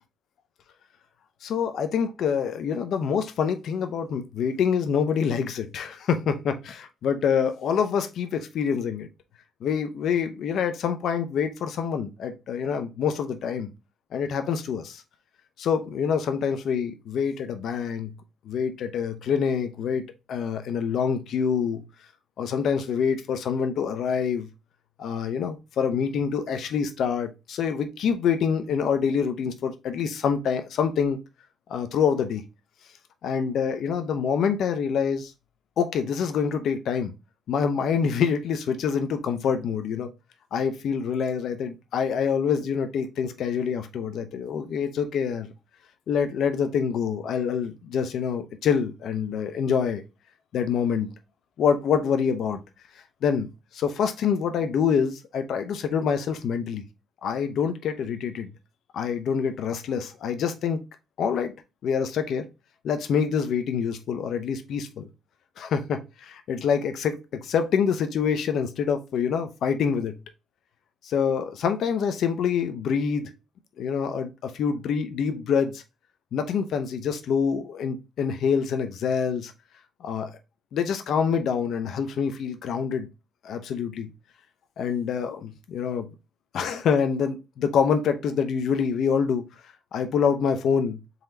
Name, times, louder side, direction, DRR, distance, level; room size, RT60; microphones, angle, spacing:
voice 1, 1.4-9.1 9.6-13.7 14.1-15.0 15.6-18.1 18.5-20.0 20.3-21.8 22.4-24.5 25.0-31.2 31.7-32.4 33.2-35.3 35.8-37.1 37.5-40.1 40.5-45.5 46.1-50.0 50.5-51.1 51.6-52.6 53.2-53.5 53.7-56.8 57.2-58.5 58.9-60.8 61.2-61.5 61.8-62.4 62.8-65.1 65.6-70.1 71.0-73.3 73.8-75.8 76.3-79.5 80.0-80.3 80.7-83.1 83.4-84.1 84.8-86.1 86.5-89.5 89.9-91.0, left 7 dB, 70° left, 0.6 m, -26 dB
4.4 x 4.0 x 2.7 m
cardioid pair, 90°, 0 cm